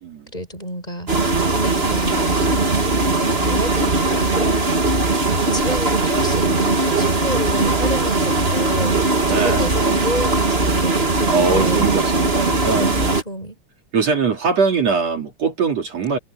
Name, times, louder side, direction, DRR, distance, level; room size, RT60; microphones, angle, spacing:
voice 1, 0.3-1.1 1.5-2.4 3.0-4.7 5.5-8.9 9.3-11.8 12.8-13.5, equal, 15° left, 6.3 m, -29 dB
sound 1, 1.1-13.2, right 2 dB, 25° right, 1.8 m, -19 dB
voice 2, 9.2-9.7 11.3-13.1 13.9-16.2, right 4 dB, 60° right, 3.9 m, -21 dB
omnidirectional pair, 3.5 m